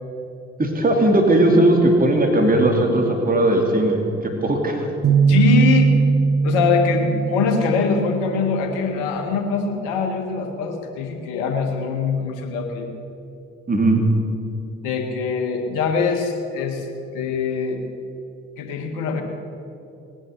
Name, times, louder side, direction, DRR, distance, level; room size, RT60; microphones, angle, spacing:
voice 1, 0.6-4.8 13.7-14.0, right 1 dB, 30° right, 2 dB, 2.6 m, -18 dB
sound 1, 5.0-8.7, right 5 dB, 45° right, 1.2 m, -19 dB
voice 2, 5.3-5.9 6.4-12.9 14.8-16.9 17.1-17.8 18.6-19.2, left 5 dB, 80° left, 4 dB, 1.7 m, -23 dB
18.5 x 9.9 x 6.6 m, 2.7 s
hypercardioid pair, 50°, 31 cm